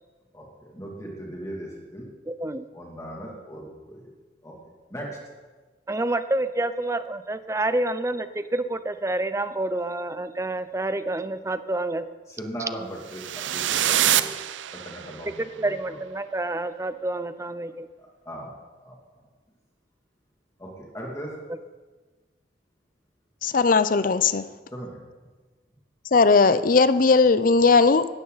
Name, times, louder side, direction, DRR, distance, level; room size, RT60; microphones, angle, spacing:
voice 1, 0.3-2.1 2.7-4.1 4.4-4.5 4.9-5.2 12.3-14.4 14.7-16.0 18.0-18.5 18.8-19.0 20.6-21.3 24.7-25.0, right 1 dB, 15° left, -2 dB, 2.6 m, -38 dB
voice 2, 2.3-2.7 5.9-12.1 15.4-17.9, right 2 dB, 15° right, 12 dB, 0.6 m, -28 dB
sound 1, 13.1-15.3, right 11 dB, 85° right, 0.6 m, -25 dB
voice 3, 23.4-24.5 26.1-28.1, left 4 dB, 50° left, 13 dB, 0.6 m, -18 dB
17.0 x 13.0 x 4.1 m, 1.3 s
head